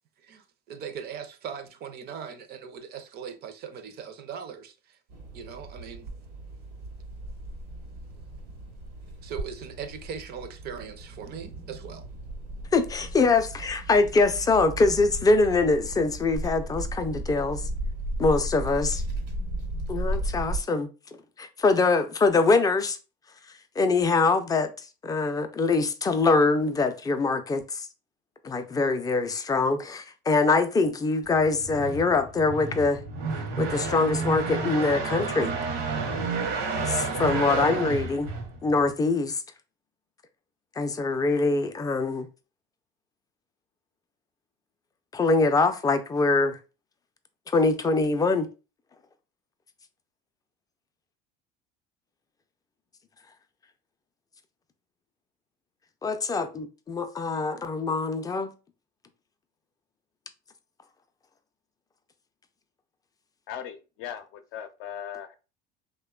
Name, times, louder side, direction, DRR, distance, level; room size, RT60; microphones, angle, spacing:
voice 1, 0.2-5.0 5.3-6.1 9.2-12.1, right 7 dB, 50° right, 0.5 m, -40 dB
sound 1, 5.1-20.6, right 1 dB, 90° right, 1.0 m, -35 dB
voice 2, 12.7-17.6 18.2-19.0 19.9-20.9 21.4-23.0 23.8-24.7 25.0-27.9 28.4-33.0 33.6-35.5 36.9-38.3 38.6-39.4 40.8-42.3 45.1-46.6 47.5-48.5 56.0-58.5, left 3 dB, 15° left, 0.3 m, -23 dB
sound 2, 31.3-38.9, right 4 dB, 70° right, 0.8 m, -30 dB
voice 3, 63.5-65.3, left 9 dB, 70° left, 0.5 m, -38 dB
2.9 x 2.1 x 2.2 m
supercardioid pair, 105°, 21 cm